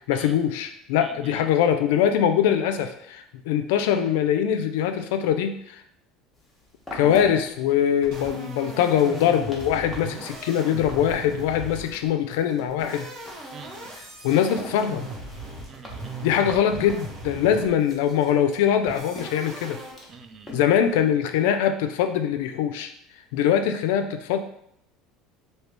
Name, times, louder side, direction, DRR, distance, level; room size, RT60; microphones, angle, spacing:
voice 1, 0.1-5.8 6.9-13.1 14.2-15.1 16.2-19.8 20.5-22.9 23.3-24.4, left 9 dB, 85° left, 8 dB, 0.3 m, -22 dB
voice 2, 1.0-1.4 13.5-13.9 15.7-16.3 20.1-20.5, right 5 dB, 30° right, 8 dB, 0.3 m, -44 dB
sound 1, 6.3-21.0, left 1 dB, 5° left, 0.8 m, -44 dB
sound 2, 8.0-12.1 12.7-17.9 18.9-19.9, right 2 dB, 70° right, 1.3 m, -38 dB
3.0 x 2.7 x 3.3 m, 0.75 s
cardioid pair, 140°, 0 cm